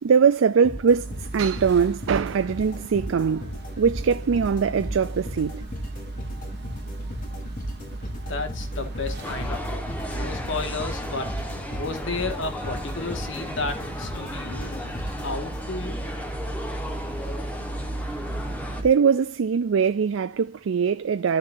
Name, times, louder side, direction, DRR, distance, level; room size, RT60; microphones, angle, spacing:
voice 1, 0.0-5.7 18.8-21.4, right 6 dB, 75° right, 0.4 m, -22 dB
sound 1, 0.6-15.9, equal, 45° left, 2.4 m, -37 dB
sound 2, 0.9-18.9, right 2 dB, 55° right, 1.1 m, -36 dB
voice 2, 8.3-9.9 10.1-11.4 11.7-14.9 15.2-16.0, left 3 dB, 70° left, 1.8 m, -32 dB
sound 3, 9.2-18.8, left 1 dB, 10° left, 1.4 m, -36 dB
13.0 x 6.7 x 2.6 m
head